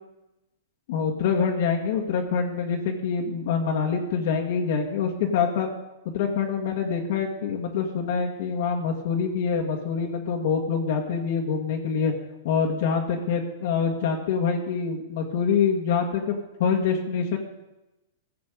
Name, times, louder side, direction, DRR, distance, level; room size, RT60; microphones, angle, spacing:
voice 1, 0.9-5.7 6.1-12.1 12.4-16.3 16.6-17.4, left 6 dB, 60° left, 0 dB, 1.6 m, -25 dB
16.0 x 7.0 x 5.2 m, 0.98 s
hypercardioid pair, 135°, 0 cm